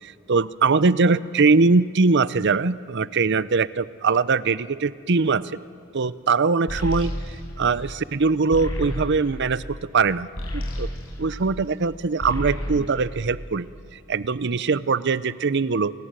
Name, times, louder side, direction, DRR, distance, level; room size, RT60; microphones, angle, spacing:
voice 1, 0.0-5.6 5.9-10.3 10.5-10.9 11.2-13.7 13.9-15.9, right 4 dB, 55° right, 16 dB, 0.7 m, -22 dB
sound 1, 6.7-11.8 12.1-13.9, equal, 75° left, 6.8 m, -32 dB
29.5 x 21.0 x 9.1 m, 2.4 s
head